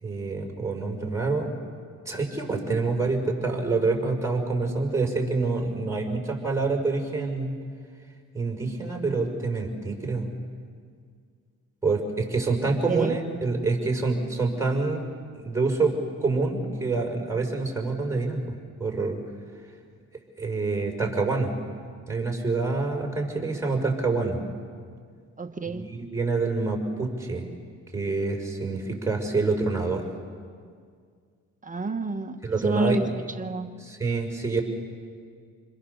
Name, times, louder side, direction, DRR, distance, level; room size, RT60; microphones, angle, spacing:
voice 1, 0.0-1.6 2.1-7.6 8.3-10.3 11.8-15.0 15.4-18.4 18.8-19.2 20.4-21.5 22.1-24.4 25.6-27.5 27.9-30.0 32.4-33.0 33.8-34.6, right 3 dB, 10° right, 0 dB, 5.8 m, -26 dB
voice 2, 25.4-25.9 31.7-33.1 33.4-33.7, right 3 dB, 25° right, 7 dB, 1.1 m, -29 dB
28.0 x 22.0 x 7.1 m, 2.1 s
cardioid pair, 90°, 30 cm